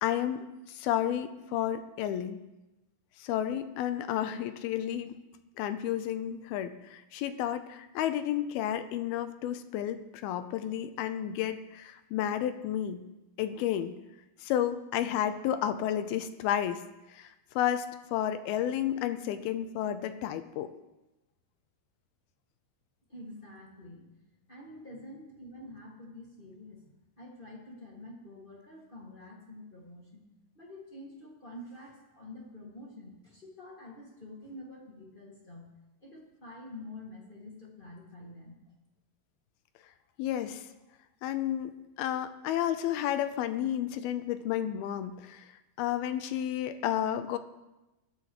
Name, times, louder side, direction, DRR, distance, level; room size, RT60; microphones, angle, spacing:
voice 1, 0.0-2.4 3.2-5.2 5.6-13.0 13.4-13.9 14.4-16.8 17.1-20.7 40.2-40.7 41.2-45.5 45.8-47.4, left 11 dB, 85° left, 10 dB, 2.5 m, -31 dB
voice 2, 23.1-24.0 24.5-30.2 30.5-35.7 36.0-38.6, left 1 dB, 25° left, -3 dB, 1.2 m, -47 dB
22.5 x 10.5 x 3.1 m, 0.99 s
omnidirectional pair, 4.6 m